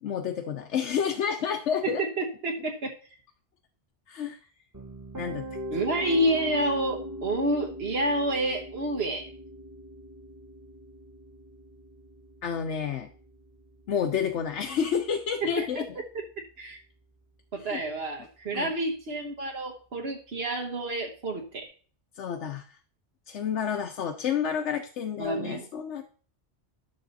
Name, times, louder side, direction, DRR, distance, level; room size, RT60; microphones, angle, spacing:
voice 1, 0.0-2.0 4.1-4.4 5.2-5.5 12.4-13.1 13.9-16.0 17.6-17.8 18.5-18.7 22.2-22.8 23.3-26.0, left 7 dB, 85° left, 6 dB, 1.1 m, -30 dB
voice 2, 1.8-2.9 5.7-9.3 15.4-15.7 16.6-16.8 17.5-21.7 25.2-25.7, right 1 dB, 65° right, 0 dB, 1.4 m, -29 dB
Piano, 4.7-16.7, equal, 15° right, 1.3 m, -41 dB
12.5 x 6.9 x 4.1 m, 0.43 s
omnidirectional pair, 1.2 m